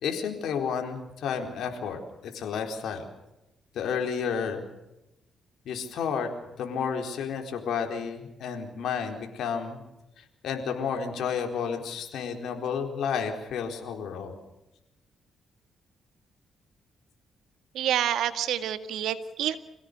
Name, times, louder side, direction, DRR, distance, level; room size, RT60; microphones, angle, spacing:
voice 1, 0.0-3.1 3.7-4.7 5.7-6.3 6.6-9.8 10.2-14.4, left 6 dB, 75° left, 4 dB, 4.2 m, -31 dB
voice 2, 17.8-19.6, right 10 dB, 85° right, 10 dB, 1.8 m, -28 dB
26.5 x 17.5 x 6.9 m, 0.92 s
cardioid pair, 90°, 0 cm